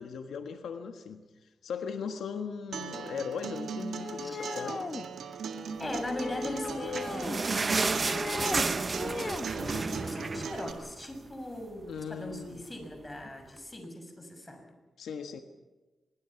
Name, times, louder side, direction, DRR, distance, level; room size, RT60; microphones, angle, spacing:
voice 1, 0.0-4.8 11.9-12.6 15.0-15.4, left 6 dB, 85° left, 6 dB, 1.5 m, -38 dB
Acoustic guitar, 2.7-10.7, right 6 dB, 85° right, 1.9 m, -39 dB
sound 1, 4.0-5.1 6.0-7.4 7.8-8.7 8.9-9.5, left 4 dB, 45° left, 1.2 m, -38 dB
voice 2, 5.8-8.7 9.5-14.7, left 1 dB, 20° left, 5 dB, 6.6 m, -39 dB
sound 2, 6.5-11.3 11.6-11.7 12.0-12.2 12.8-12.9, right 3 dB, 35° right, 0.7 m, -32 dB
24.5 x 22.0 x 5.9 m, 1.2 s
cardioid pair, 80°, 0 cm